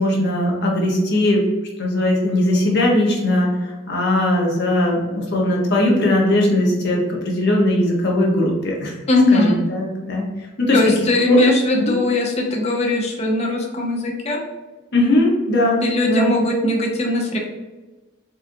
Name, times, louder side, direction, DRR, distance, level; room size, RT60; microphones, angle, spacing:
voice 1, 0.0-1.4 1.8-9.0 9.3-10.9 11.3-11.4 11.8-12.0 14.9-16.3, left 1 dB, 55° left, -2 dB, 1.0 m, -19 dB
voice 2, 9.1-9.6 10.7-14.4 15.8-17.4, left 2 dB, 30° left, 0 dB, 0.6 m, -19 dB
4.3 x 2.5 x 2.7 m, 1.2 s
head